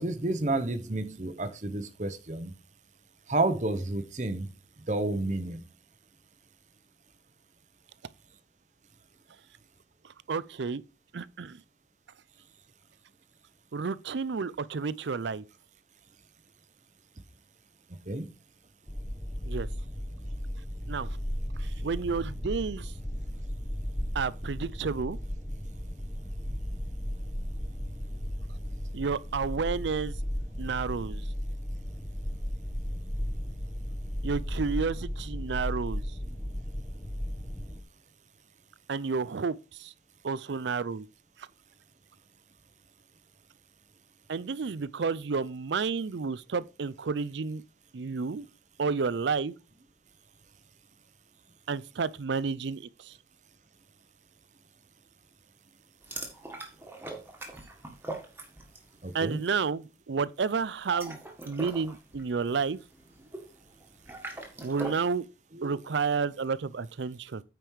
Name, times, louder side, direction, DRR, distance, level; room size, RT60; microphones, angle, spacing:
voice 1, 0.0-2.5 3.3-4.5 4.9-5.6 18.1-18.3 59.0-59.4 60.1-60.2 65.5-65.8, right 2 dB, 40° right, 0.9 m, -30 dB
voice 2, 10.3-10.8 11.1-11.6 13.7-15.4 19.5-19.7 20.9-21.1 21.8-22.9 24.1-25.2 28.9-30.1 30.6-31.2 34.2-36.0 38.9-39.9 40.2-41.1 44.3-47.6 47.9-48.5 48.8-49.5 51.7-53.1 59.1-61.2 61.4-62.8 64.6-65.2 65.6-67.4, right 5 dB, 70° right, 0.5 m, -31 dB
sound 1, 18.9-37.8, equal, 10° left, 1.1 m, -35 dB
sound 2, 56.0-58.9 59.2-59.5 60.7-65.1, right 2 dB, 10° right, 1.6 m, -42 dB
9.1 x 5.2 x 4.7 m
head